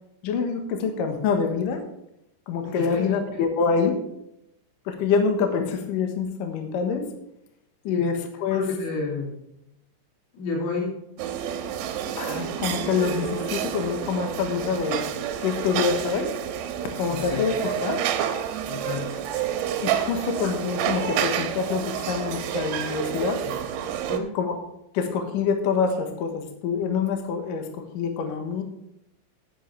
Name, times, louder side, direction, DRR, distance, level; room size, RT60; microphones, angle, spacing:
voice 1, 0.2-1.8 2.5-4.0 4.9-7.1 7.8-8.7 12.2-15.1 15.4-16.3 17.0-18.0 19.8-23.4 24.3-24.6 24.9-28.6, left 5 dB, 65° left, 5 dB, 2.3 m, -26 dB
voice 2, 2.6-3.5 7.9-8.1 8.4-9.4 10.3-11.0 17.1-17.5 18.6-19.2 23.4-23.5 24.1-24.3, left 3 dB, 80° left, -2 dB, 5.5 m, -31 dB
sound 1, 11.2-24.2, right 9 dB, 80° right, 3.1 m, -29 dB
11.0 x 11.0 x 3.3 m, 0.82 s
omnidirectional pair, 5.4 m